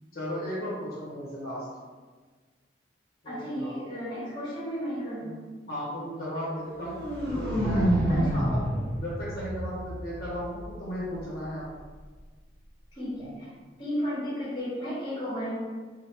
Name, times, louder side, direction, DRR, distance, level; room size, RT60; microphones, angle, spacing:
voice 1, 0.1-1.7 3.2-3.8 5.2-5.3 5.7-6.9 7.3-11.7, equal, 55° left, -7 dB, 0.8 m, -35 dB
voice 2, 3.2-5.3 8.1-8.4 12.9-13.5 13.8-15.5, equal, 30° left, -7 dB, 1.0 m, -33 dB
sound 1, 6.6-10.6, equal, 60° right, 1.0 m, -28 dB
3.2 x 2.0 x 2.9 m, 1.4 s
head